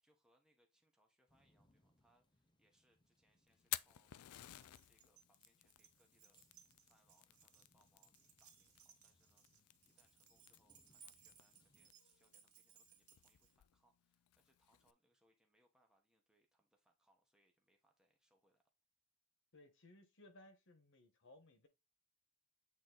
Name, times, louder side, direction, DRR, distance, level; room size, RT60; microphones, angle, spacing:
voice 1, 0.0-4.2 4.5-6.4 6.8-18.6, right 1 dB, 5° right, 1.0 m, -79 dB
sound 1, 1.3-11.9, left 1 dB, 20° left, 0.8 m, -79 dB
Fire, 3.5-14.9, left 15 dB, 80° left, 0.4 m, -54 dB
Keys jangling, 4.3-13.6, right 7 dB, 70° right, 1.6 m, -67 dB
voice 2, 19.5-21.7, left 1 dB, 60° left, 1.3 m, -63 dB
8.5 x 2.9 x 3.9 m
head